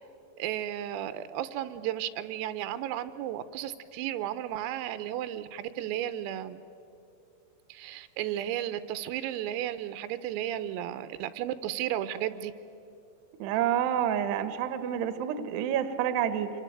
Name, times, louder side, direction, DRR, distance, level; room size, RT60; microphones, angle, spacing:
voice 1, 0.4-6.6 7.7-12.5, right 12 dB, 85° right, 12 dB, 3.6 m, -34 dB
voice 2, 13.4-16.5, right 9 dB, 70° right, 11 dB, 2.8 m, -28 dB
26.0 x 24.0 x 9.1 m, 2.6 s
omnidirectional pair, 6.0 m